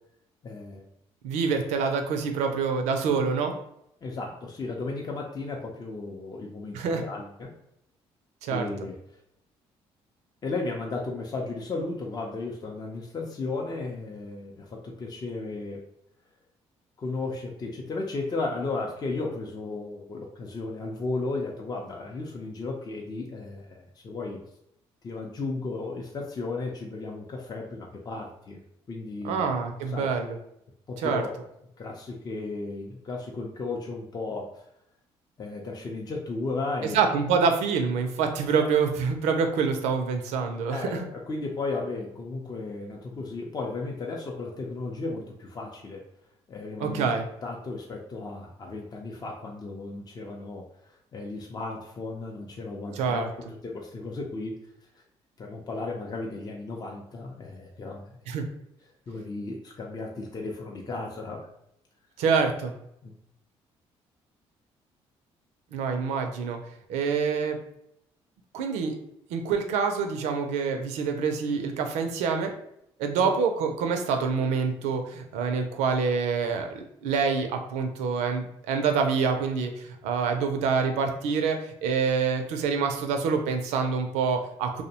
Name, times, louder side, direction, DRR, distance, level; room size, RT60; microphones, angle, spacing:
voice 1, 0.4-0.9 3.1-3.2 4.0-7.5 8.5-9.0 10.4-15.8 17.0-24.4 25.0-28.6 28.9-29.4 29.9-30.1 30.9-31.3 31.8-34.6 35.4-37.0 38.6-38.7 40.7-46.0 46.5-47.1 47.4-53.2 53.6-54.6 55.4-58.2 59.1-61.5 63.0-63.1 73.2-73.3, left 3 dB, 35° left, 0 dB, 0.5 m, -34 dB
voice 2, 1.2-3.5 6.7-7.0 8.4-8.7 29.2-30.4 31.0-31.2 36.9-41.0 46.8-47.3 53.0-53.3 58.3-58.5 62.2-62.7 65.7-66.6 66.9-67.6 68.5-68.9 69.3-72.5 73.0-84.8, right 5 dB, 90° right, 5 dB, 0.4 m, -26 dB
2.6 x 2.1 x 2.7 m, 0.77 s
supercardioid pair, 75°, 12 cm